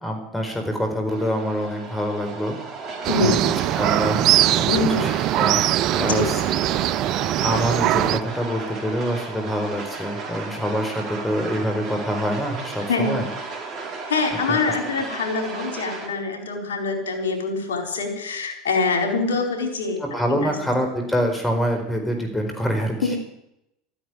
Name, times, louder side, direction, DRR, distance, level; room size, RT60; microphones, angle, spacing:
voice 1, 0.0-2.6 3.2-3.4 3.7-4.7 5.0-5.1 5.4-5.7 5.9-6.2 7.4-13.2 14.5-14.6 20.0-23.2, equal, 10° left, 4 dB, 4.6 m, -25 dB
sound 1, 1.1-16.1, right 4 dB, 40° right, 4.7 m, -34 dB
sound 2, 3.0-8.2, right 14 dB, 55° right, 0.5 m, -21 dB
voice 2, 4.7-5.2 6.0-6.3 12.9-13.2 14.1-20.0 20.3-20.5 23.0-23.2, left 3 dB, 85° left, 3 dB, 4.3 m, -24 dB
13.5 x 9.9 x 9.5 m, 0.81 s
hypercardioid pair, 90°, 0 cm